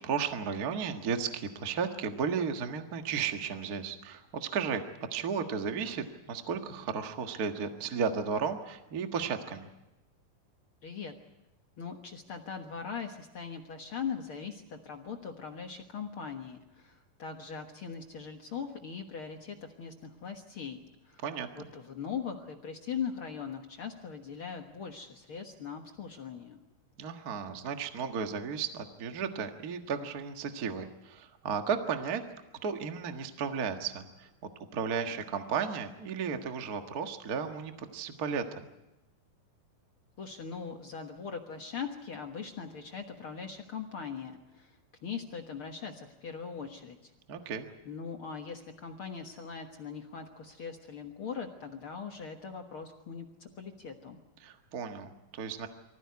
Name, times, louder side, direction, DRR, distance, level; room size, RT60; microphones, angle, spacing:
voice 1, 0.0-4.8 5.1-9.7 21.2-21.7 27.0-32.2 32.6-34.3 34.7-38.7 47.3-47.7 54.4-55.7, right 6 dB, 50° right, 5 dB, 1.1 m, -34 dB
voice 2, 10.8-11.1 11.8-21.2 21.5-26.6 40.2-47.1 47.8-54.2, left 6 dB, 55° left, 3 dB, 1.5 m, -40 dB
24.5 x 15.5 x 9.6 m, 0.98 s
omnidirectional pair, 4.2 m